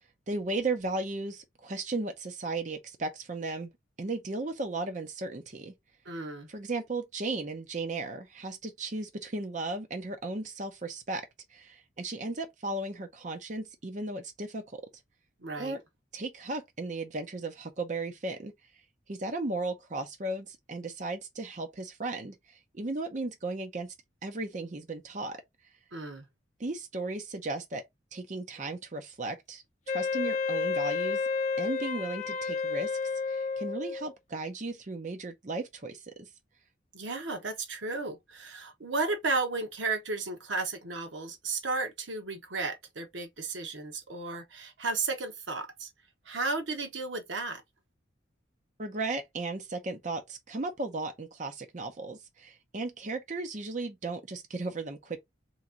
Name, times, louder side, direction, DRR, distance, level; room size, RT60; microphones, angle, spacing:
voice 1, 0.3-3.7 4.0-5.7 6.5-14.8 15.6-15.8 16.1-18.5 19.1-23.9 24.2-25.4 26.6-27.8 28.1-31.2 31.6-33.0 33.3-36.3 48.8-55.2, right 2 dB, 40° right, 0.6 m, -35 dB
voice 2, 6.1-6.5 15.4-15.8 25.9-26.3 36.9-45.9 46.3-47.6, right 3 dB, 80° right, 1.0 m, -34 dB
Wind instrument woodwind instrument, 29.9-34.1, left 4 dB, 40° left, 0.7 m, -31 dB
3.5 x 3.0 x 3.8 m
head